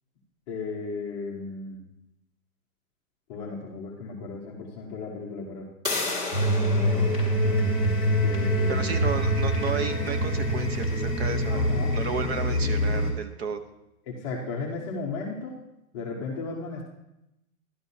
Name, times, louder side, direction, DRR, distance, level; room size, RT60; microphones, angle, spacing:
voice 1, 0.5-1.8 3.3-5.7 6.7-7.2 8.2-9.2 11.5-11.9 14.1-15.6 15.9-16.8, left 4 dB, 20° left, -3 dB, 0.8 m, -35 dB
sound 1, 5.8-11.4, left 3 dB, 10° right, 1.8 m, -36 dB
sound 2, 6.3-13.1, equal, 25° right, 2.7 m, -25 dB
Bowed string instrument, 7.2-11.1, left 1 dB, 70° right, 2.2 m, -41 dB
voice 2, 8.7-13.6, right 5 dB, 45° right, 9 dB, 0.9 m, -33 dB
12.5 x 12.0 x 2.7 m, 0.89 s
hypercardioid pair, 170°, 45 cm